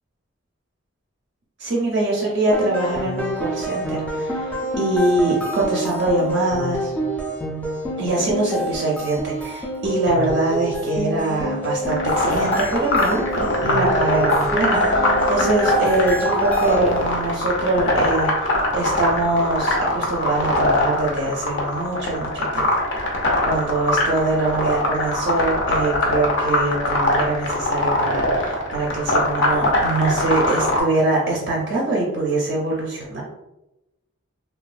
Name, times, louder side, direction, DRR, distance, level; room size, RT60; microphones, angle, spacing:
voice 1, 1.6-6.9 8.0-33.2, right 2 dB, 50° right, -3 dB, 0.5 m, -23 dB
sound 1, 2.5-17.2, right 1 dB, 5° left, 0.3 m, -27 dB
sound 2, 11.9-30.8, left 1 dB, 60° left, 0.6 m, -22 dB
2.9 x 2.3 x 2.4 m, 0.95 s
head